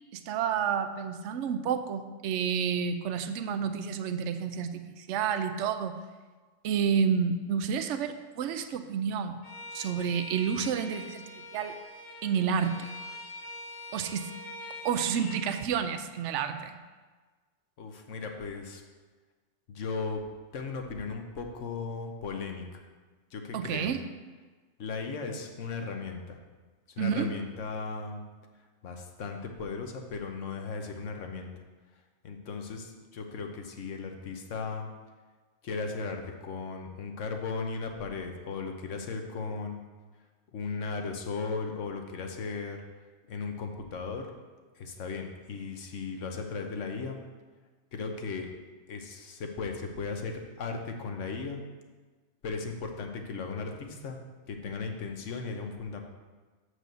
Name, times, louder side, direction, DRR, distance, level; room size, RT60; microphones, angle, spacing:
voice 1, 0.1-6.0 6.6-9.4 9.7-11.8 12.2-12.9 13.9-14.3 14.8-16.8 23.5-24.0 27.0-27.3, right 7 dB, 75° right, 9 dB, 0.9 m, -30 dB
Bowed string instrument, 9.4-15.7, left 1 dB, 65° left, 1.0 m, -44 dB
voice 2, 17.8-18.8 19.7-20.2 20.5-22.8 23.3-23.9 24.8-26.4 26.9-28.2 28.8-31.5 32.2-34.9 35.6-39.8 40.5-42.8 43.3-44.3 44.7-47.2 47.9-48.5 48.9-51.6 52.4-54.2 54.5-56.0, left 4 dB, 90° left, 4 dB, 1.3 m, -36 dB
7.6 x 4.8 x 6.7 m, 1.3 s
omnidirectional pair, 1.3 m